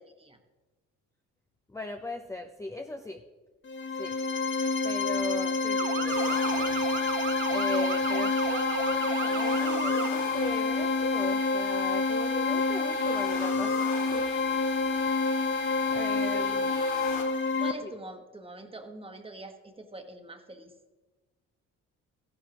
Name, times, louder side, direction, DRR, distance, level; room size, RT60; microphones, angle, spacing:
voice 1, 1.7-3.2 4.0-4.1 4.8-6.9 7.5-14.4 15.0-15.1 15.9-16.7 17.8-17.9, left 2 dB, 10° left, 4 dB, 0.6 m, -38 dB
sound 1, 3.6-17.7, left 3 dB, 40° left, 0.9 m, -28 dB
Motor vehicle (road) / Siren, 5.8-10.1, right 8 dB, 40° right, 0.5 m, -35 dB
sound 2, 6.1-17.2, left 4 dB, 75° left, 2.2 m, -35 dB
voice 2, 15.8-16.8 17.6-20.7, right 2 dB, 20° right, 5 dB, 1.4 m, -44 dB
14.5 x 11.0 x 3.0 m, 1.2 s
cardioid pair, 90°, 30 cm